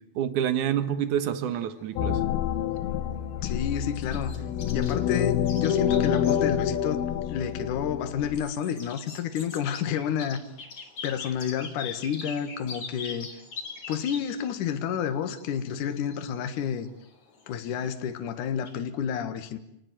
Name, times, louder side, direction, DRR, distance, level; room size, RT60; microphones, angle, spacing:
voice 1, 0.2-2.2, right 9 dB, 65° right, 12 dB, 2.5 m, -27 dB
sound 1, 1.3-18.8, left 4 dB, 45° left, 4.4 m, -44 dB
sound 2, 2.0-8.4, left 9 dB, 80° left, 3.0 m, -27 dB
voice 2, 3.4-4.3 4.7-7.0 7.3-10.4 11.0-13.3 13.9-16.9 17.5-19.6, left 8 dB, 60° left, 8 dB, 2.9 m, -30 dB
29.0 x 19.0 x 9.2 m, 0.78 s
omnidirectional pair, 4.3 m